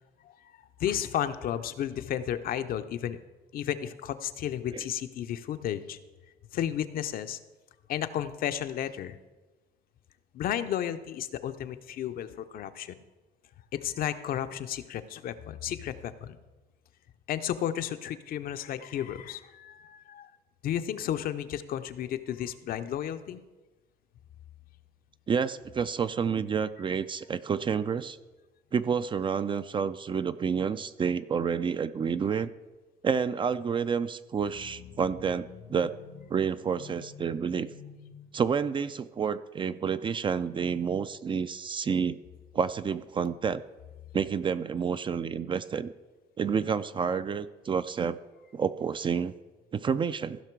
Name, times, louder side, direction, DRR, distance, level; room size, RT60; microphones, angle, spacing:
voice 1, 0.8-3.2 3.5-6.0 6.5-7.4 7.9-9.2 10.3-13.0 13.7-16.4 17.3-20.3 20.6-23.4, left 10 dB, 60° left, 10 dB, 0.6 m, -33 dB
voice 2, 25.3-28.2 28.7-32.5 33.0-36.0 36.3-37.7 38.3-42.2 42.5-43.6 44.1-45.9 46.4-48.2 48.5-49.3 49.7-50.4, right 6 dB, 30° right, 13 dB, 0.4 m, -29 dB
sound 1, 34.5-39.1, left 7 dB, 85° left, 1.1 m, -50 dB
15.5 x 5.7 x 4.6 m, 1.2 s
cardioid pair, 110°, 17 cm